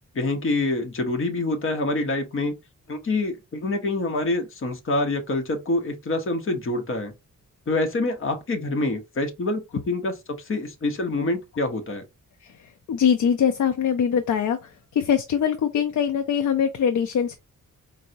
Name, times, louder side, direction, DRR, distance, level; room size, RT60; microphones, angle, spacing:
voice 1, 0.1-2.5 2.9-7.1 7.7-12.0, left 2 dB, 40° left, 0.8 m, -26 dB
voice 2, 12.4-17.4, left 8 dB, 65° left, 0.5 m, -23 dB
4.5 x 2.0 x 2.6 m
wide cardioid pair, 140°, 31 cm